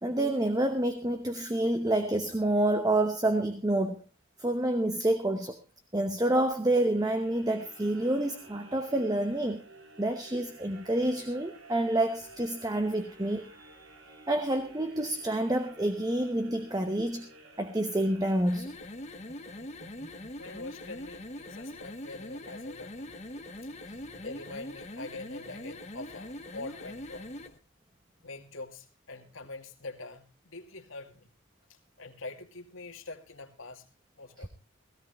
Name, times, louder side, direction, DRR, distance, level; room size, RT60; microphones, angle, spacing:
voice 1, 0.0-4.0 4.4-5.6 5.9-9.6 10.0-13.9 14.3-17.3 17.6-18.7 19.8-19.9 34.4-34.5, right 1 dB, 20° right, 0.9 m, -28 dB
sound 1, 6.8-19.0, right 2 dB, 75° right, 3.1 m, -53 dB
sound 2, 18.4-27.6, left 1 dB, 35° left, 1.1 m, -42 dB
voice 2, 20.4-23.3 23.6-23.7 24.2-27.4 28.2-31.3 31.7-33.9 34.2-34.5, left 3 dB, 80° left, 2.3 m, -44 dB
17.0 x 16.5 x 3.1 m
head